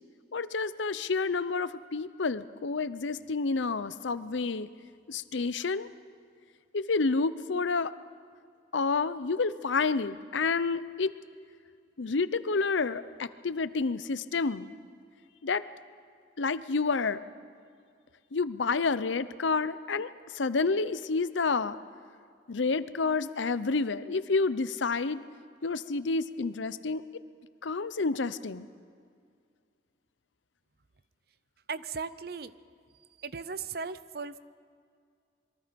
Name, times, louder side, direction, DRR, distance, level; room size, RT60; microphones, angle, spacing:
voice 1, 0.3-4.7 5.1-5.9 6.7-7.9 8.7-11.1 12.0-14.7 15.4-15.6 16.4-17.2 18.3-21.8 22.5-25.2 25.6-27.0 27.6-28.7, left 4 dB, 85° left, 15 dB, 0.7 m, -29 dB
voice 2, 31.7-32.5 33.2-34.4, right 5 dB, 55° right, 15 dB, 0.7 m, -37 dB
27.0 x 22.5 x 5.3 m, 2.2 s
head